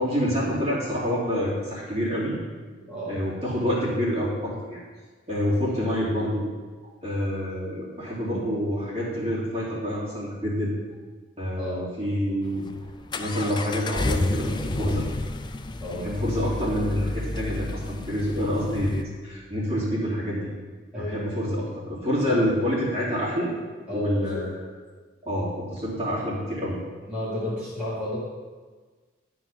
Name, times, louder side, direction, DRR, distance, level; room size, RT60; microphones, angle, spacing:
voice 1, 0.0-2.3 3.1-4.8 5.3-6.4 7.0-10.7 11.4-12.7 13.1-15.0 16.0-20.5 21.0-23.5 23.9-24.5 25.2-26.8, equal, 30° right, -8 dB, 3.1 m, -27 dB
voice 2, 2.9-3.2 8.2-8.4 11.6-12.0 15.8-16.1 20.9-21.4 22.3-22.5 23.9-24.4 27.1-28.2, left 1 dB, 5° right, -12 dB, 2.5 m, -32 dB
Accelerating revving vroom, 12.4-19.0, left 2 dB, 25° left, 0.4 m, -31 dB
12.5 x 4.8 x 5.6 m, 1.4 s
head